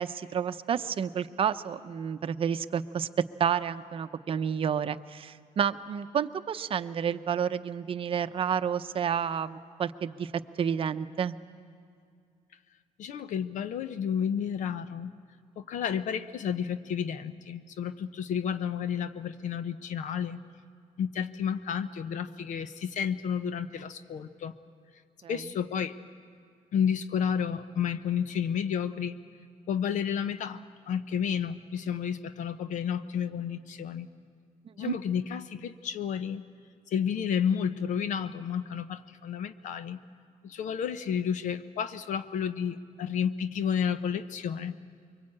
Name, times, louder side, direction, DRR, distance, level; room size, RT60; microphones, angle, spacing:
voice 1, 0.0-3.1 3.4-11.4 25.2-25.4 34.8-34.9, right 8 dB, 45° right, 11 dB, 0.7 m, -30 dB
voice 2, 13.0-15.1 15.6-20.4 21.0-24.5 25.3-26.0 26.7-29.2 29.7-30.6 30.9-34.1 34.8-36.4 36.9-40.0 40.4-44.7, left 8 dB, 70° left, 12 dB, 0.9 m, -31 dB
23.5 x 23.5 x 8.7 m, 2.2 s
cardioid pair, 135°, 13 cm